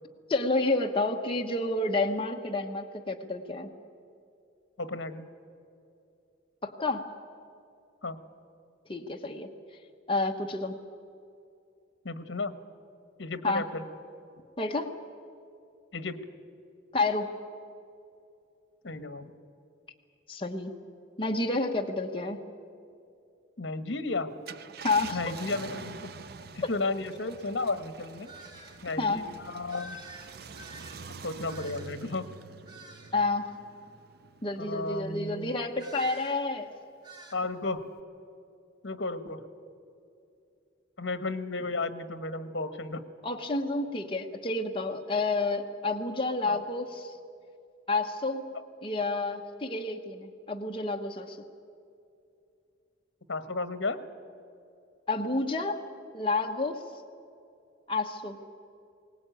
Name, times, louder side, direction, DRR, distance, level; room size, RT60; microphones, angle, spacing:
voice 1, 0.3-3.7 6.6-7.1 8.9-9.5 10.1-10.7 13.4-13.6 14.6-14.9 16.9-17.3 20.3-20.7 21.2-22.4 24.8-25.3 26.6-26.7 29.0-29.3 33.1-33.5 34.4-36.7 43.2-47.2 47.9-48.4 48.8-51.4 55.1-55.8 56.1-56.8 57.9-58.4, left 2 dB, 25° left, 2 dB, 1.0 m, -29 dB
voice 2, 4.8-5.3 8.0-8.2 12.0-12.6 13.2-13.8 15.9-16.2 18.8-19.3 23.6-24.3 25.1-26.1 26.5-28.3 28.8-30.0 31.2-32.3 34.6-35.5 37.3-37.8 38.8-39.4 41.0-43.0 46.5-46.6 53.3-54.0, left 3 dB, 70° left, 11 dB, 1.4 m, -33 dB
Car, 24.3-35.1 35.6-35.7 37.8-38.0, right 5 dB, 50° right, 0.7 m, -46 dB
sound 1, 28.3-28.8 29.7-32.1 32.7-33.2 35.8-36.4 37.0-37.4, right 1 dB, 25° right, 2.4 m, -48 dB
21.5 x 18.5 x 9.1 m, 2.6 s
head